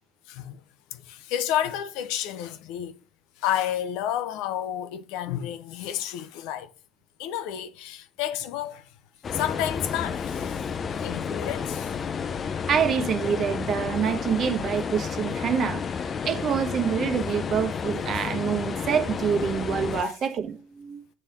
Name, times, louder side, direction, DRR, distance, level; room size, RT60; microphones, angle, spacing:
voice 1, 0.9-3.0 3.4-6.7 7.2-8.8 9.3-10.6 10.9-11.9 20.0-20.1, left 11 dB, 80° left, 0.6 m, -30 dB
sound 1, 9.2-20.0, left 6 dB, 40° left, 0.6 m, -31 dB
voice 2, 12.7-15.8 16.2-21.0, right 7 dB, 50° right, 1.0 m, -26 dB
7.5 x 3.3 x 5.6 m
supercardioid pair, 80°, 0 cm